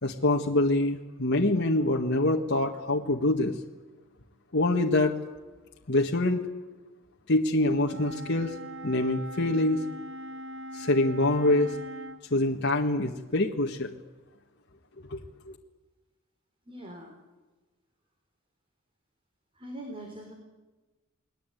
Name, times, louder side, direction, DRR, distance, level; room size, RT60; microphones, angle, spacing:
voice 1, 0.0-3.6 4.5-5.1 5.9-6.4 7.3-8.5 8.8-9.8 10.7-11.8 12.3-13.9 15.1-15.2 15.5-15.6, left 2 dB, 55° left, 1 dB, 1.7 m, -25 dB
Wind instrument woodwind instrument, 7.8-12.2, equal, 90° right, 2.5 m, -41 dB
voice 2, 16.7-17.2 19.5-20.3, right 1 dB, 25° right, 2 dB, 4.3 m, -42 dB
30.0 x 21.0 x 9.3 m, 1.2 s
head